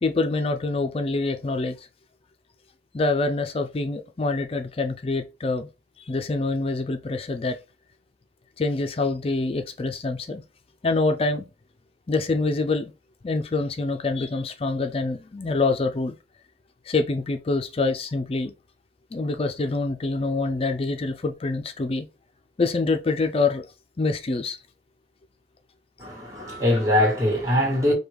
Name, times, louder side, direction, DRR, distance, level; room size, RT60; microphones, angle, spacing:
voice 1, 0.0-1.9 2.9-5.7 6.1-7.6 8.6-10.4 10.8-11.5 12.1-12.9 13.2-16.1 16.9-18.5 19.1-22.1 22.6-23.7 24.0-24.6 26.4-26.5, left 3 dB, 30° left, 0.4 m, -25 dB
voice 2, 26.0-27.9, left 1 dB, 20° right, 1.8 m, -22 dB
4.9 x 2.3 x 3.5 m
head